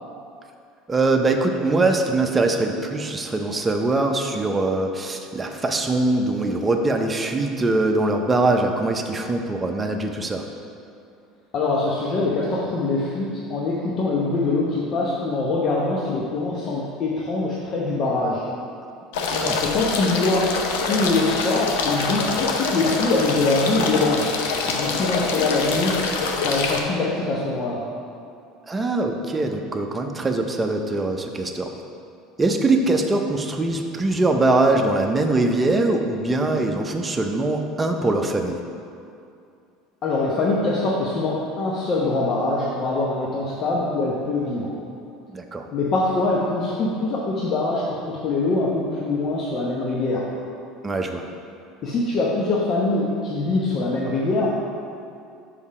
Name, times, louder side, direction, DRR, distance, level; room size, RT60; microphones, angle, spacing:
voice 1, 0.9-10.4 19.4-19.6 28.7-31.7 32.4-38.6 45.3-45.7 50.8-51.2, right 2 dB, 20° right, 4 dB, 0.7 m, -22 dB
voice 2, 11.5-18.4 19.6-20.6 20.9-24.3 24.7-26.0 26.4-27.8 40.0-44.7 45.7-50.3 51.8-54.7, left 2 dB, 50° left, -4 dB, 0.9 m, -23 dB
sound 1, 19.1-26.8, left 4 dB, 75° left, 0.7 m, -25 dB
5.4 x 5.0 x 4.9 m, 2.5 s
hypercardioid pair, 75°, 0 cm